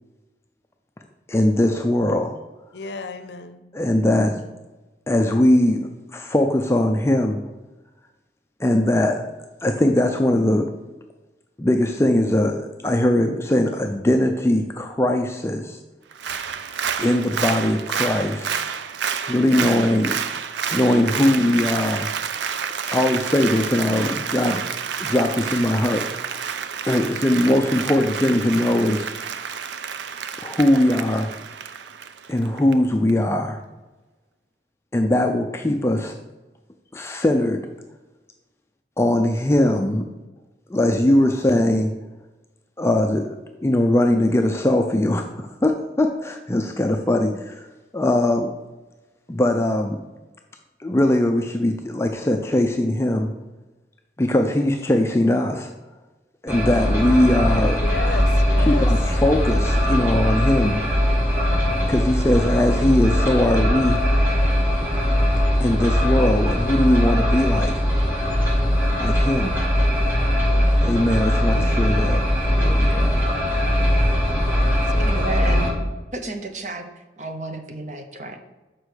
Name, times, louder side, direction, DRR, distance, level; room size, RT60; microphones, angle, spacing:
voice 1, 1.3-2.4 3.7-4.4 5.1-7.4 8.6-9.2 9.6-10.7 11.6-15.8 17.0-18.6 19.3-20.2 20.7-22.1 22.9-24.6 25.0-26.5 26.9-29.1 30.4-31.3 32.3-33.6 34.9-36.2 36.9-37.7 39.0-40.1 40.7-41.9 42.8-43.4 43.6-47.7 47.9-48.5 49.3-50.0 50.8-53.3 54.2-55.7 56.4-57.8 58.7-60.8 61.9-64.0 65.6-67.8 69.0-69.5 70.8-72.2 72.5-73.2, left 1 dB, 15° left, 4 dB, 0.4 m, -20 dB
voice 2, 2.7-3.6 57.8-58.9 74.9-75.9, left 3 dB, 70° left, 10 dB, 0.6 m, -33 dB
Applause, 16.1-32.7 33.1-33.2, right 7 dB, 75° right, 0.5 m, -29 dB
sound 1, 56.5-75.7, equal, 10° right, 1.7 m, -20 dB
voice 3, 75.0-75.7 76.1-78.4, right 2 dB, 40° right, 6 dB, 0.8 m, -32 dB
6.0 x 4.8 x 6.5 m, 1.1 s
head